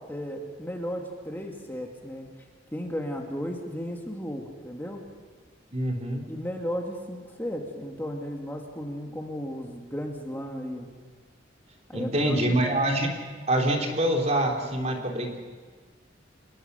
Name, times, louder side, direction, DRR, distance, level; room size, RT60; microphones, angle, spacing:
voice 1, 0.1-2.3 2.7-5.0 6.3-10.9 11.9-12.6, equal, 10° left, 1 dB, 2.3 m, -34 dB
voice 2, 5.7-6.3 11.9-13.1 13.5-15.4, right 1 dB, 35° right, 1 dB, 3.5 m, -25 dB
26.0 x 21.0 x 6.9 m, 1.5 s
head